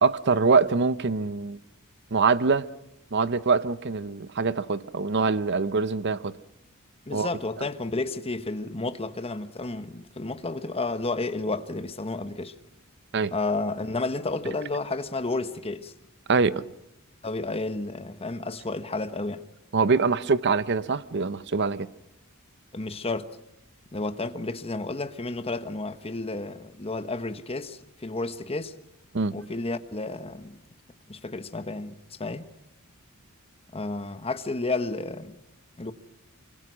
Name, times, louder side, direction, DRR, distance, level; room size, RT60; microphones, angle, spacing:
voice 1, 0.0-1.6 2.1-2.7 3.1-6.4 7.1-7.3 13.1-13.3 16.3-16.6 19.7-21.9 29.1-29.4, right 4 dB, 55° right, 0.8 m, -24 dB
voice 2, 7.1-12.5 13.3-15.9 17.2-19.4 22.7-23.4 23.9-28.7 29.3-30.6 31.1-32.5 33.7-35.4 35.8-35.9, left 2 dB, 25° left, 1.1 m, -31 dB
25.0 x 24.5 x 6.2 m
head